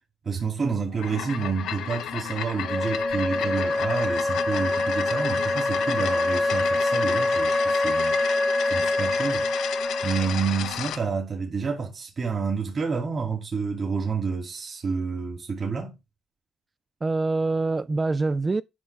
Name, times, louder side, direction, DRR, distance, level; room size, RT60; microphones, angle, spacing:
voice 1, 0.2-8.2 8.6-9.5 10.0-15.9, right 5 dB, 45° right, 2.5 m, -29 dB
sound 1, 0.9-11.0, left 10 dB, 80° left, 0.7 m, -32 dB
Wind instrument woodwind instrument, 2.6-10.4, left 2 dB, 15° left, 0.7 m, -25 dB
voice 2, 17.0-18.6, right 3 dB, 25° right, 0.3 m, -25 dB
9.6 x 5.3 x 3.4 m
cardioid pair, 90°, 0 cm